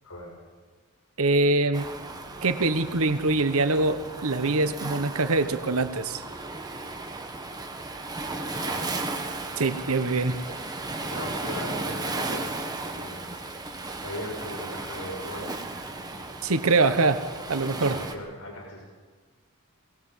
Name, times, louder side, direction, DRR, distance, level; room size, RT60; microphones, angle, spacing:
voice 1, 1.2-1.9 2.4-6.2 9.6-10.4 16.4-17.2 17.5-18.0, right 3 dB, 70° right, 10 dB, 1.2 m, -24 dB
Waves surf, 1.7-18.1, right 2 dB, 20° right, 1.7 m, -35 dB
voice 2, 8.2-9.0 11.0-13.3 14.0-15.6 15.9-16.4 17.9-18.8, left 1 dB, 80° left, 0 dB, 4.6 m, -39 dB
22.0 x 18.5 x 7.5 m, 1.4 s
head